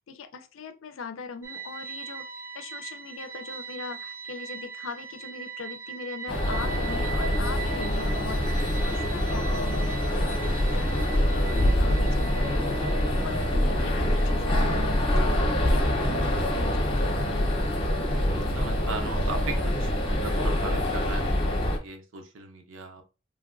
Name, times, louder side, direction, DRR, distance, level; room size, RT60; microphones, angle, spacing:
voice 1, 0.0-2.3 2.5-12.7 13.0-15.4 15.7-17.5, left 4 dB, 80° left, 0.4 m, -40 dB
sound 1, 1.4-21.3, right 6 dB, 15° right, 0.3 m, -42 dB
sound 2, 6.3-21.8, left 1 dB, 30° left, 0.7 m, -25 dB
voice 2, 18.0-19.6 19.9-23.0, right 3 dB, 70° right, 0.6 m, -38 dB
3.3 x 2.3 x 2.4 m
head